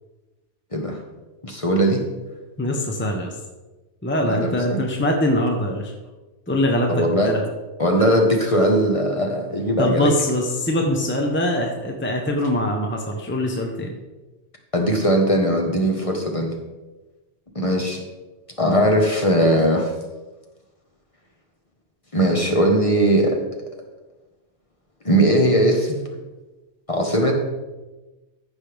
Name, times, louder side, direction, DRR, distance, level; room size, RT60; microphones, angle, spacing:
voice 1, 1.4-2.0 4.2-4.8 6.9-7.3 7.8-10.1 14.7-16.5 17.5-18.0 18.6-19.9 22.1-23.4 25.0-26.0 26.9-27.4, right 1 dB, 30° left, 1 dB, 1.2 m, -19 dB
voice 2, 2.6-3.3 4.0-5.9 6.5-7.4 9.8-13.9, left 1 dB, 10° left, 1 dB, 0.9 m, -23 dB
14.5 x 6.0 x 3.5 m, 1.1 s
omnidirectional pair, 1.2 m